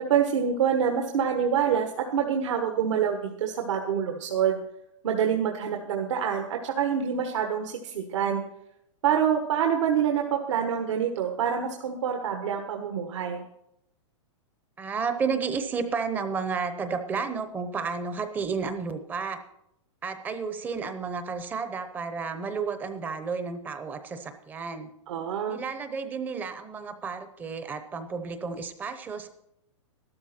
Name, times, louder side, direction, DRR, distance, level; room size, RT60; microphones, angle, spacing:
voice 1, 0.0-4.6 5.0-8.4 9.0-13.4 25.1-25.6, right 8 dB, 65° right, 3 dB, 1.5 m, -26 dB
voice 2, 14.8-19.4 20.0-24.9 25.5-29.3, right 5 dB, 10° right, 9 dB, 0.8 m, -32 dB
13.0 x 12.5 x 4.4 m, 0.81 s
hypercardioid pair, 165°, 16 cm